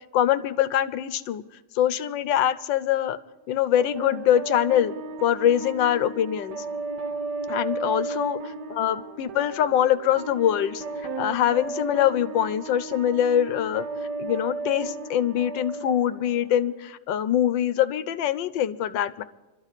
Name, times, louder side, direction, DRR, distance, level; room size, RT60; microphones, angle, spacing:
voice 1, 0.1-1.4 1.7-3.2 3.5-4.9 5.2-6.6 7.5-10.8 11.2-13.8 14.2-19.2, left 10 dB, 85° left, 13 dB, 1.4 m, -23 dB
sound 1, 3.7-16.8, right 3 dB, 70° right, 1.4 m, -35 dB
25.5 x 13.5 x 4.1 m, 1.1 s
omnidirectional pair, 2.0 m